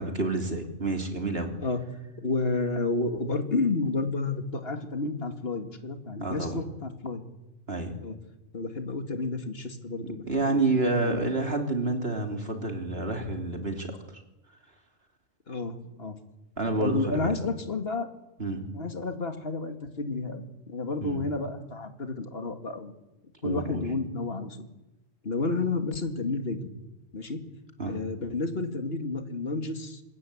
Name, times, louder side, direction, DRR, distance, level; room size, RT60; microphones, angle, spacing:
voice 1, 0.0-1.5 6.2-6.6 7.7-8.0 10.3-14.0 16.6-17.4 18.4-18.7 21.0-21.2 23.4-23.8 27.8-28.0, right 2 dB, 55° right, 3 dB, 3.5 m, -29 dB
voice 2, 2.2-7.2 8.0-8.2 8.5-11.3 15.5-16.2 16.7-18.1 18.7-22.9 23.4-24.6 25.2-26.7 27.1-27.4 27.9-30.0, left 3 dB, 55° left, 6 dB, 2.4 m, -31 dB
25.5 x 21.5 x 8.7 m, 0.98 s
omnidirectional pair, 1.3 m